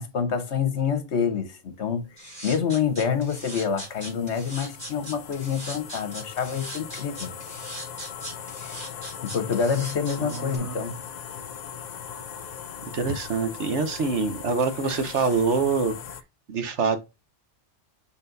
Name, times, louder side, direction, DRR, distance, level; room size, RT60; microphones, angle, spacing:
voice 1, 0.0-2.1 2.4-7.3 8.6-8.8 9.2-11.0, left 6 dB, 70° left, 1.3 m, -27 dB
sound 1, 1.8-16.2, left 8 dB, 50° left, 0.5 m, -40 dB
sound 2, 2.2-10.6, right 1 dB, 45° right, 3.9 m, -39 dB
voice 2, 10.2-10.9 12.9-15.9 16.5-17.0, right 4 dB, 75° right, 1.2 m, -25 dB
5.4 x 4.4 x 4.0 m
omnidirectional pair, 1.2 m